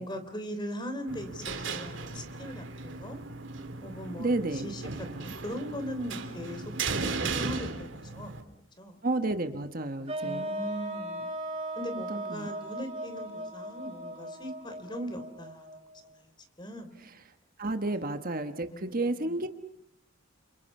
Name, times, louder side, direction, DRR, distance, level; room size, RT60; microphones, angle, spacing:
voice 1, 0.0-3.2 3.8-8.3 8.8-9.0 10.2-11.3 11.8-16.3 16.6-17.0 17.9-18.0 18.7-19.3, equal, 20° left, 8 dB, 3.5 m, -40 dB
sound 1, 1.1-8.4, right 4 dB, 60° right, 3.1 m, -36 dB
voice 2, 4.2-4.7 5.1-5.3 9.0-10.5 11.9-12.5 17.0-17.1 17.6-19.5, right 2 dB, 40° right, 7 dB, 1.3 m, -31 dB
sound 2, 10.1-16.1, right 1 dB, 25° right, 6.2 m, -38 dB
29.5 x 28.5 x 5.5 m, 0.72 s
head